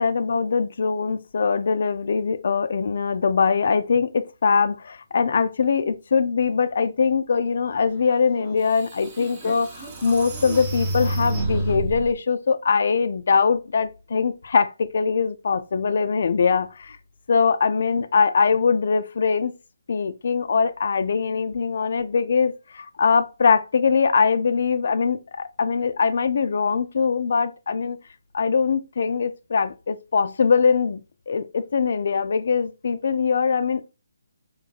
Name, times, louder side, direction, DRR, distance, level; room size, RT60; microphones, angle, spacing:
voice 1, 0.0-17.0 17.3-19.5 19.9-28.0 28.3-33.9, left 5 dB, 50° left, 0.3 m, -22 dB
sound 1, 8.4-8.5 9.0-12.1, right 2 dB, 25° right, 0.7 m, -28 dB
3.7 x 2.6 x 2.3 m
figure-of-eight pair, 145°, 0 cm